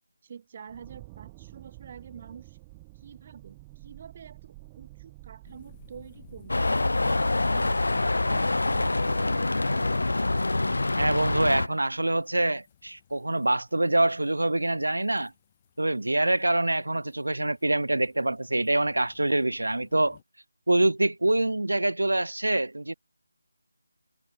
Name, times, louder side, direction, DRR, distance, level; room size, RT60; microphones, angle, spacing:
voice 1, 0.2-2.6 2.9-6.7, right 7 dB, 30° right, 1.2 m, -48 dB
sound 1, 0.7-9.0, right 23 dB, 15° right, 1.5 m, -49 dB
sound 2, 5.4-20.2, left 10 dB, 25° left, 5.9 m, -55 dB
sound 3, 6.5-11.7, left 2 dB, 75° left, 0.6 m, -25 dB
voice 2, 11.0-15.3 15.8-20.2 20.7-22.9, right 2 dB, 85° right, 0.4 m, -25 dB
figure-of-eight pair, 165°, 0 cm